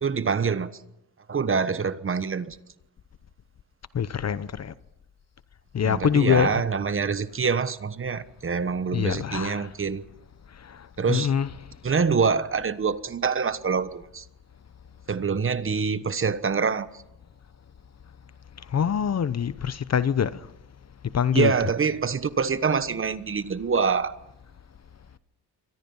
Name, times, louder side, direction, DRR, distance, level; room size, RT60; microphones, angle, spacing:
voice 1, 0.0-0.7 1.3-2.6 5.8-10.0 11.0-11.3 11.8-14.2 15.1-16.9 21.3-24.1, right 5 dB, 30° right, 1.2 m, -25 dB
voice 2, 3.9-4.7 5.7-6.6 8.9-9.7 11.1-11.6 18.7-20.4 21.1-21.6, left 8 dB, 40° left, 0.9 m, -24 dB
29.0 x 24.0 x 5.6 m
cardioid pair, 105°, 40 cm